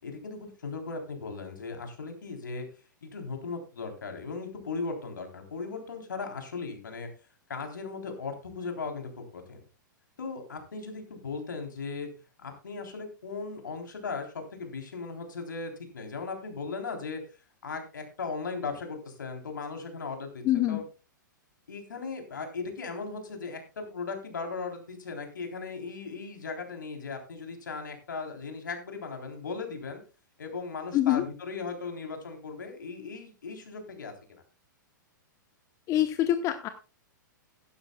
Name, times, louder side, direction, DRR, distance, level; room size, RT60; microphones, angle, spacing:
voice 1, 0.0-2.7 3.0-7.1 7.5-9.6 10.2-12.1 12.4-17.2 17.6-20.8 21.7-30.0 30.4-34.4, left 4 dB, 70° left, 4 dB, 3.6 m, -37 dB
voice 2, 20.4-20.8 30.9-31.2 35.9-36.7, left 13 dB, 30° left, 9 dB, 1.0 m, -25 dB
16.0 x 12.0 x 2.3 m, 0.32 s
figure-of-eight pair, 105°, 11 cm